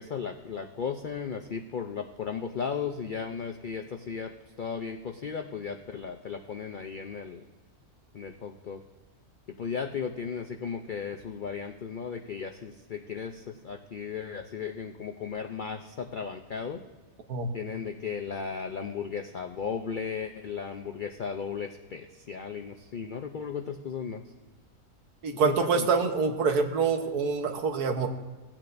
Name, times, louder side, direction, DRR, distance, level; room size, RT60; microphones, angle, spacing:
voice 1, 0.0-4.3 4.6-7.4 8.1-8.8 9.6-16.8 17.5-24.2 25.3-25.9, left 6 dB, 85° left, 5 dB, 0.4 m, -35 dB
voice 2, 25.2-28.1, right 5 dB, 85° right, 5 dB, 1.5 m, -26 dB
17.5 x 8.9 x 2.6 m, 1.3 s
omnidirectional pair, 1.6 m